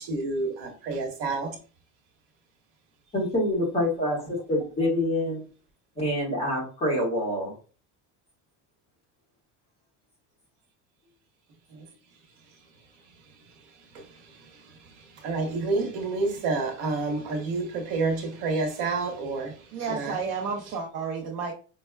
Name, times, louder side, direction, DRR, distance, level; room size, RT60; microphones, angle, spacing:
voice 1, 0.0-1.6 11.7-11.9 13.4-13.5 13.8-20.2, right 3 dB, 75° right, 1.0 m, -30 dB
voice 2, 3.1-5.4 5.9-7.6, left 1 dB, 15° left, 1.3 m, -26 dB
voice 3, 19.7-21.5, right 5 dB, 45° right, 0.6 m, -31 dB
5.3 x 2.1 x 2.2 m
cardioid pair, 160°, 36 cm